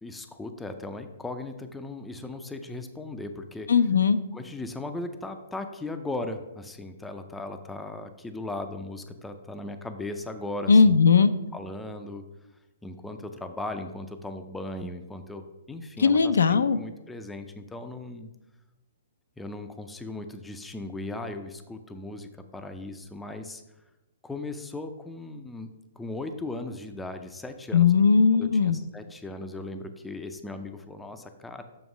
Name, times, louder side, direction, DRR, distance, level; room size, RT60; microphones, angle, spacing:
voice 1, 0.0-3.7 4.3-11.0 11.5-12.3 12.8-18.3 19.4-23.6 24.2-25.7 26.0-27.9 28.3-31.6, left 2 dB, 5° left, 7 dB, 0.4 m, -37 dB
voice 2, 3.7-4.2 10.7-11.3 16.0-16.8 27.7-28.8, left 5 dB, 90° left, 12 dB, 0.4 m, -18 dB
7.1 x 3.1 x 6.0 m, 1.0 s
hypercardioid pair, 160°, 0 cm